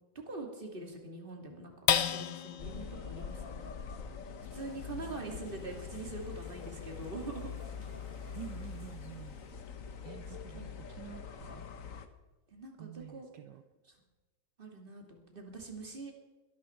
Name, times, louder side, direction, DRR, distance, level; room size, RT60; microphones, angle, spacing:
voice 1, 0.3-1.7 2.1-3.7 4.5-7.5 10.5-10.7 12.5-13.3 14.6-16.1, right 3 dB, 25° right, 1 dB, 2.7 m, -43 dB
sound 1, 1.9-8.6 9.1-9.2 9.6-10.0, left 10 dB, 80° left, 1.6 m, -37 dB
sound 2, 2.6-12.1, left 6 dB, 50° left, 1.3 m, -44 dB
sound 3, 4.5-9.7, left 1 dB, 5° right, 3.9 m, -56 dB
voice 2, 5.2-5.8 8.3-9.4 10.0-11.6 12.8-13.6, right 11 dB, 75° right, 9 dB, 1.3 m, -49 dB
21.5 x 12.5 x 4.5 m, 1.2 s
omnidirectional pair, 2.1 m